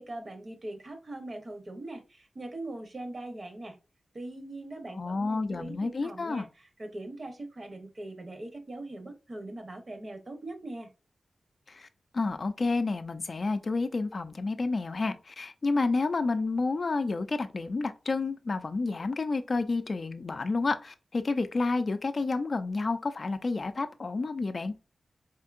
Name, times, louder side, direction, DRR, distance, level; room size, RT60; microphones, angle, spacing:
voice 1, 0.0-3.8 4.1-10.9, right 2 dB, 45° right, 0.8 m, -41 dB
voice 2, 4.9-6.5 11.7-11.9 12.1-24.7, left 3 dB, 45° left, 0.4 m, -30 dB
4.3 x 2.7 x 2.4 m
wide cardioid pair, 115°, 0 cm